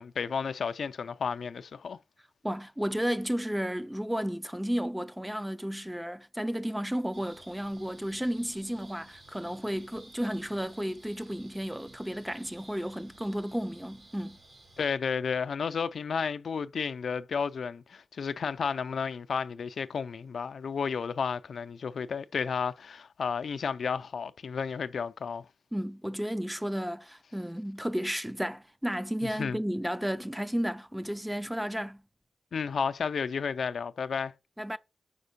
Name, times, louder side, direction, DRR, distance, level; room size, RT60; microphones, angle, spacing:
voice 1, 0.0-2.0 14.8-25.5 29.4-29.6 32.5-34.3, left 6 dB, 85° left, 0.4 m, -32 dB
voice 2, 2.4-14.4 25.7-32.0 34.6-34.8, equal, 5° right, 0.4 m, -33 dB
sound 1, 7.1-14.9, right 2 dB, 75° right, 3.8 m, -55 dB
5.1 x 4.4 x 5.2 m
wide cardioid pair, 110°, 0 cm